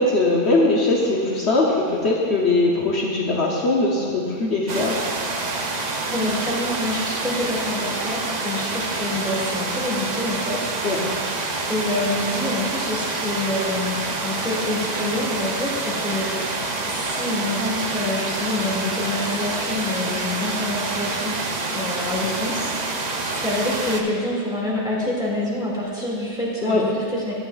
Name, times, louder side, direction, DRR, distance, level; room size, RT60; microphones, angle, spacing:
voice 1, 0.0-5.0 10.8-11.0 26.6-26.8, left 2 dB, 60° left, -3 dB, 1.1 m, -20 dB
sound 1, 4.7-24.0, right 3 dB, 45° right, 0.6 m, -27 dB
voice 2, 6.1-10.6 11.7-21.4 21.7-23.0 23.4-27.3, left 1 dB, 5° right, -6 dB, 2.1 m, -27 dB
12.5 x 9.5 x 2.4 m, 2.2 s
omnidirectional pair, 1.3 m